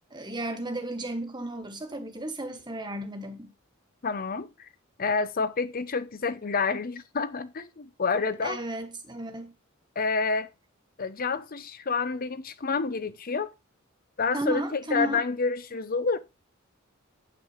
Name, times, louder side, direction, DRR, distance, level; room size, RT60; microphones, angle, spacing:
voice 1, 0.1-3.5 8.4-9.5 14.3-15.2, right 1 dB, 20° right, 1.5 m, -33 dB
voice 2, 4.0-4.7 5.0-8.6 10.0-10.5 11.0-13.5 14.2-16.2, left 4 dB, 45° left, 0.7 m, -28 dB
8.3 x 5.9 x 5.0 m
head